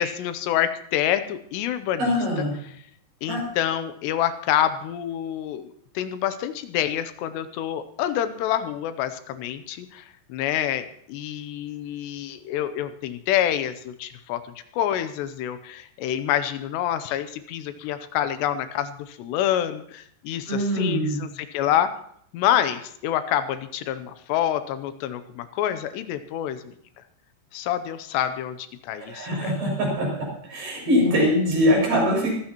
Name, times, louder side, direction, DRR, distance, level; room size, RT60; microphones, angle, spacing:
voice 1, 0.0-2.1 3.2-14.4 14.7-21.9 22.3-26.7 27.5-29.6, left 11 dB, 85° left, 10 dB, 2.9 m, -27 dB
voice 2, 2.0-2.6 3.3-3.4 20.5-21.2 29.0-30.1 30.5-32.4, equal, 75° right, -2 dB, 8.6 m, -22 dB
23.5 x 14.5 x 3.0 m, 0.66 s
omnidirectional pair, 4.9 m